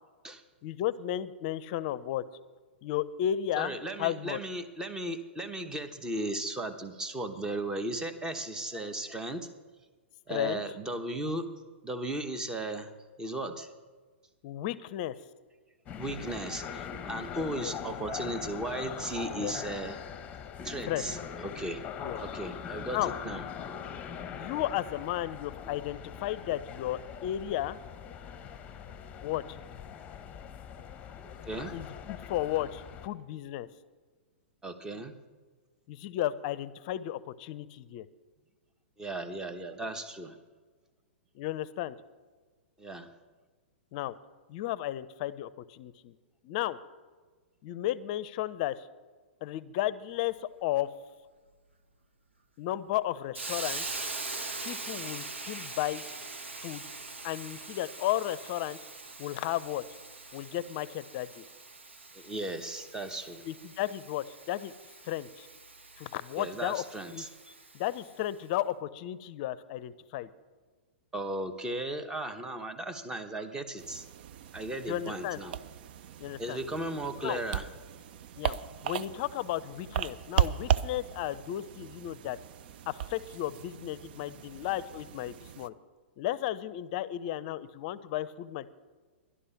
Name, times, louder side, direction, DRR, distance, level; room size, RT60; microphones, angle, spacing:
voice 1, 0.6-2.2 2.8-4.4 10.3-10.6 14.4-15.2 17.5-17.7 19.4-19.6 20.9-21.0 22.0-22.2 22.9-23.1 24.3-27.8 29.2-29.6 31.7-33.7 35.9-38.1 41.3-42.0 43.9-44.1 44.5-46.2 46.4-46.8 47.6-48.9 49.4-50.9 52.6-54.0 54.6-56.1 56.6-56.8 57.2-58.8 59.2-59.8 60.3-61.4 63.4-64.7 65.0-65.5 66.0-66.8 67.1-67.2 67.7-70.3 74.9-75.4 76.2-76.6 77.2-77.4 78.4-78.6 78.8-82.4 82.9-85.7 86.2-88.7, left 13 dB, 45° left, 17 dB, 0.6 m, -34 dB
voice 2, 3.6-9.5 10.3-11.5 11.8-12.9 13.2-13.7 16.0-20.0 20.6-21.2 21.4-21.8 22.2-23.4 31.5-31.7 34.6-35.1 39.0-40.4 42.8-43.1 62.1-63.4 66.4-67.3 71.1-74.0 74.5-75.6 76.4-77.7, right 1 dB, 10° right, 8 dB, 1.0 m, -36 dB
sound 1, 15.9-33.1, left 8 dB, 25° left, 0.9 m, -42 dB
Hiss, 53.3-68.1, right 3 dB, 85° right, 1.2 m, -42 dB
sound 2, 73.8-85.7, right 9 dB, 55° right, 0.5 m, -36 dB
11.5 x 11.5 x 5.8 m, 1.4 s
hypercardioid pair, 120°, 6 cm